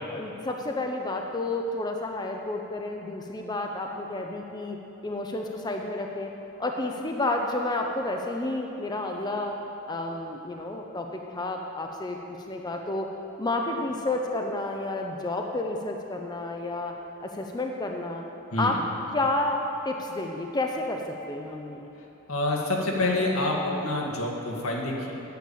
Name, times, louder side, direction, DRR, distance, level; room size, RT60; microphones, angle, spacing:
voice 1, 0.1-6.3 6.6-9.6 9.9-13.1 13.4-16.9 17.2-18.2 18.6-18.8 19.1-19.6 19.8-21.9, left 2 dB, 20° left, 2 dB, 0.6 m, -30 dB
voice 2, 22.3-25.1, left 2 dB, 80° left, -1 dB, 1.7 m, -27 dB
9.3 x 7.2 x 8.5 m, 3.0 s
head